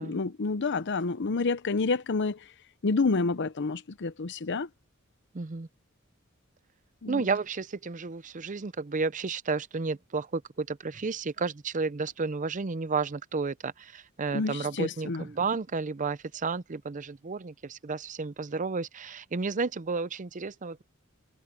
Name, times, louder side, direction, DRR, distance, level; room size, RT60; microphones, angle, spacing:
voice 1, 0.0-2.4 2.8-4.7 7.0-7.2 14.3-15.2, left 3 dB, 55° left, 0.7 m, -28 dB
voice 2, 5.3-5.7 7.1-20.8, right 4 dB, 35° right, 0.6 m, -32 dB
head